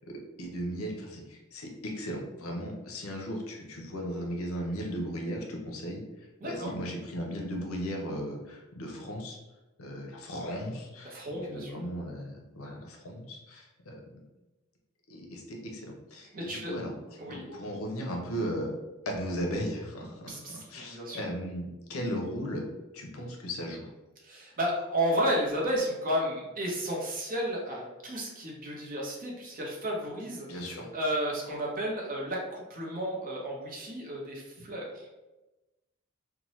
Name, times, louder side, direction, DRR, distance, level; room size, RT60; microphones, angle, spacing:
voice 1, 0.1-6.0 6.4-9.4 9.8-14.0 15.1-16.9 17.3-18.7 19.1-22.6 22.9-23.9 30.5-30.9, equal, 75° left, 1 dB, 0.6 m, -36 dB
voice 2, 6.4-6.7 11.0-11.8 16.3-16.7 17.2-17.6 20.1-21.2 24.2-35.1, equal, 40° right, -2 dB, 0.7 m, -33 dB
2.8 x 2.1 x 3.0 m, 1.1 s
head